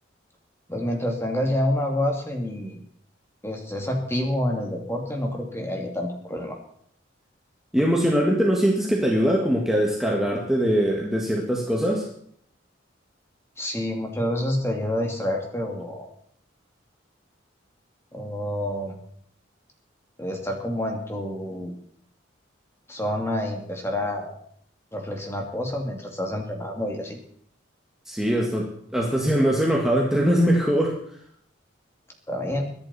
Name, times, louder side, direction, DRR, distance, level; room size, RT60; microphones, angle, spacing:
voice 1, 0.7-2.8 3.4-6.6 13.6-16.1 18.1-18.9 20.2-21.7 22.9-24.4 24.9-27.2 32.3-32.7, left 1 dB, 15° left, 2 dB, 2.4 m, -28 dB
voice 2, 7.7-12.1 28.1-31.0, equal, 5° right, -2 dB, 1.8 m, -22 dB
22.5 x 11.0 x 4.2 m, 0.64 s
head